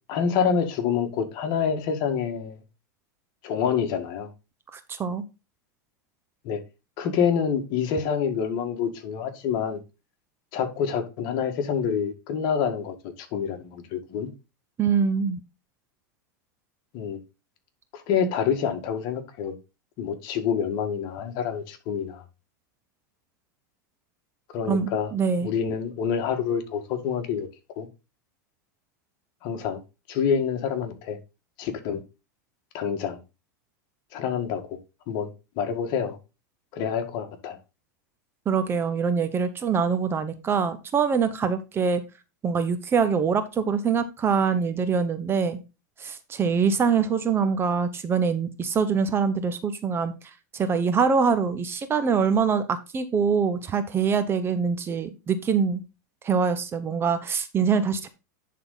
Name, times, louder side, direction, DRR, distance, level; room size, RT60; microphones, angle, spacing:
voice 1, 0.1-2.6 3.4-4.3 6.4-6.6 7.0-9.8 10.5-14.3 16.9-17.2 17.9-19.6 20.0-22.2 24.5-25.1 25.4-27.5 27.8-27.9 29.4-29.8 30.1-31.2 31.6-32.0 32.7-33.2 34.1-34.8 35.1-35.3 35.6-36.2 36.7-37.6, left 7 dB, 50° left, 1.7 m, -27 dB
voice 2, 4.7-5.2 14.8-15.4 24.7-25.5 38.5-42.0 42.4-45.6 46.0-50.1 50.5-55.8 56.2-58.1, right 6 dB, 25° right, 0.8 m, -24 dB
10.5 x 3.9 x 3.9 m
hypercardioid pair, 125°, 10 cm